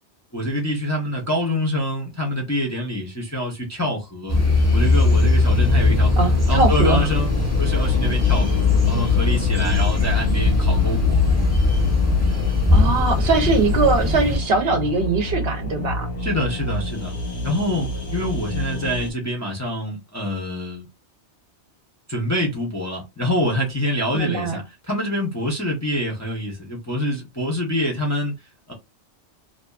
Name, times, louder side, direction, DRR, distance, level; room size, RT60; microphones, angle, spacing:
voice 1, 0.3-4.4 4.7-6.2 6.5-7.3 7.6-11.2 16.2-17.1 17.4-20.8 22.1-28.4 28.7-28.8, equal, 20° left, 0.6 m, -26 dB
sound 1, 4.3-19.1, left 2 dB, 75° left, 1.1 m, -28 dB
sound 2, 4.3-14.4, left 3 dB, 15° right, 0.7 m, -19 dB
voice 2, 6.2-7.1 12.7-16.1 24.1-24.6, right 3 dB, 65° right, 0.8 m, -21 dB
2.6 x 2.3 x 2.3 m
omnidirectional pair, 1.2 m